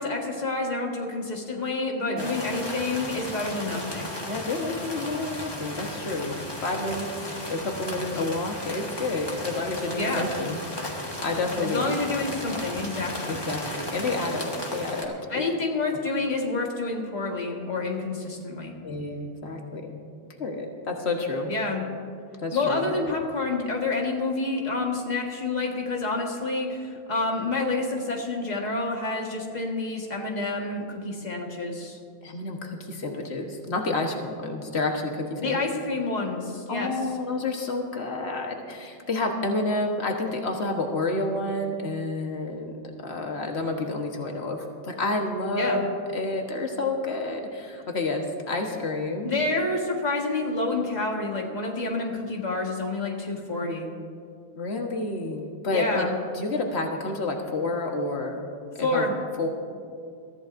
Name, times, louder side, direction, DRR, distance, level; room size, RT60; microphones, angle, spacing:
voice 1, 0.0-4.1 10.0-10.3 11.6-13.4 15.3-18.7 21.5-21.8 22.5-32.0 35.4-36.9 45.6-45.8 49.2-53.9 55.7-56.2 58.8-59.2, left 3 dB, 40° left, 0 dB, 1.7 m, -28 dB
voice 2, 2.1-2.5 4.3-7.1 7.5-11.9 13.3-15.4 18.8-20.0 20.4-21.5 22.4-22.9 32.2-35.6 36.7-49.3 54.6-56.1 56.3-58.5 58.8-59.5, left 2 dB, 90° left, 2 dB, 1.6 m, -29 dB
sound 1, 2.2-15.0, left 1 dB, 25° left, 1.5 m, -35 dB
22.5 x 14.0 x 2.6 m, 2.3 s
omnidirectional pair, 1.1 m